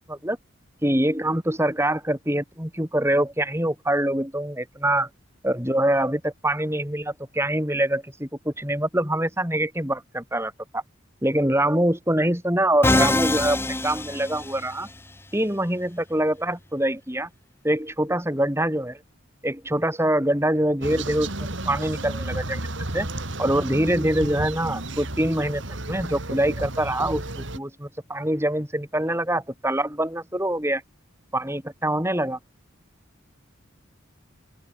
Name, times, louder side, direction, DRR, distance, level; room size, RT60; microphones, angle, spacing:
voice 1, 0.8-5.1 5.4-10.8 11.2-14.9 15.3-17.3 17.6-19.0 19.4-22.6 22.9-23.1 23.4-30.8 31.3-32.4, right 1 dB, 10° right, 5.6 m, -24 dB
Musical instrument, 12.8-14.9, left 2 dB, 10° left, 1.1 m, -23 dB
sound 1, 20.8-27.6, right 2 dB, 65° right, 3.2 m, -32 dB
open air
head